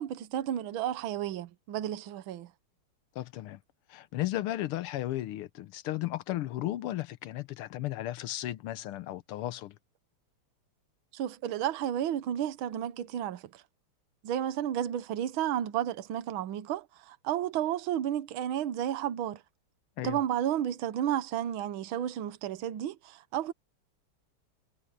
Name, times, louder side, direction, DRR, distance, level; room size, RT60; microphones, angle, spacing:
voice 1, 0.0-2.5 11.1-13.6 14.2-19.4 20.0-23.5, right 11 dB, 70° right, 1.7 m, -32 dB
voice 2, 3.1-3.6 3.9-9.8 20.0-20.2, left 14 dB, 90° left, 1.7 m, -35 dB
omnidirectional pair, 2.4 m